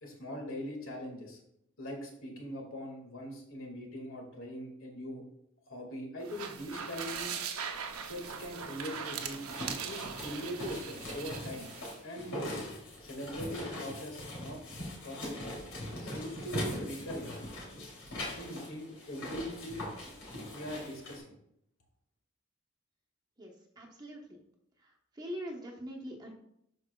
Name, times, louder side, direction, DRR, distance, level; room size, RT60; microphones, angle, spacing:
voice 1, 0.0-1.4 1.8-5.2 5.7-7.3 8.1-9.4 9.7-11.7 12.0-12.6 13.0-14.6 15.0-15.6 16.0-17.3 18.3-19.9 20.5-21.3, equal, 65° left, 1 dB, 1.9 m, -41 dB
sound 1, 6.2-12.0, right 7 dB, 85° right, 0.7 m, -40 dB
sound 2, 8.9-21.2, left 1 dB, 85° left, 2.8 m, -41 dB
voice 2, 23.4-24.4 24.8-26.4, equal, 20° right, 0 dB, 1.0 m, -43 dB
11.5 x 4.8 x 2.3 m, 0.75 s
head